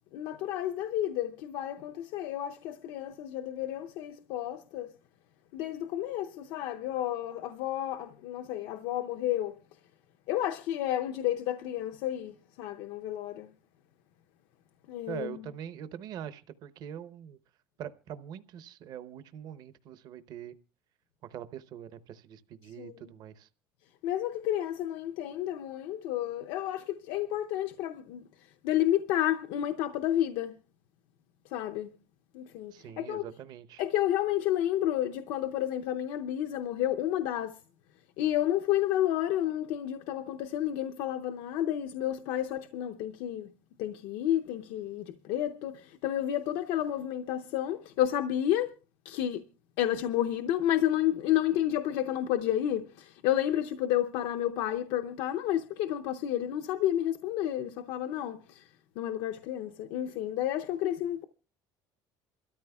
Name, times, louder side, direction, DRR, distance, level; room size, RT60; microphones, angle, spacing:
voice 1, 0.1-4.9 5.5-9.5 10.3-13.5 14.9-15.3 22.8-22.9 24.0-28.2 28.6-30.5 31.5-31.9 32.3-33.2 33.8-37.6 38.2-43.5 43.8-48.7 49.0-49.4 49.8-58.7 59.0-61.2, left 12 dB, 80° left, 0.6 m, -31 dB
voice 2, 15.1-17.4 17.8-20.6 21.2-23.5 32.7-33.8, right 9 dB, 50° right, 0.7 m, -43 dB
27.5 x 13.0 x 2.3 m
cardioid pair, 160°, 9 cm